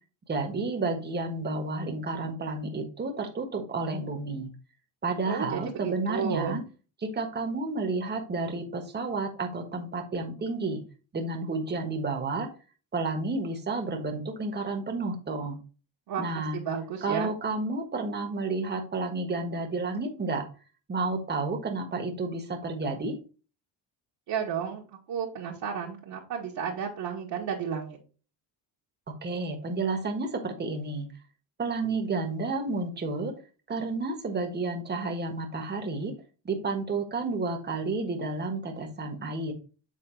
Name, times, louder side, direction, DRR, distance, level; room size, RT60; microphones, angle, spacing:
voice 1, 0.3-4.5 5.0-6.6 7.0-10.8 11.1-12.5 12.9-15.6 16.2-16.6 17.0-20.4 20.9-23.1 29.1-31.1 31.6-33.3 33.7-36.1 36.4-39.5, right 3 dB, 25° right, 3 dB, 1.5 m, -31 dB
voice 2, 5.3-6.6 16.1-17.3 24.3-24.8 25.1-28.0, right 7 dB, 55° right, -3 dB, 1.7 m, -32 dB
7.7 x 3.8 x 3.9 m, 0.36 s
cardioid pair, 125°, 44 cm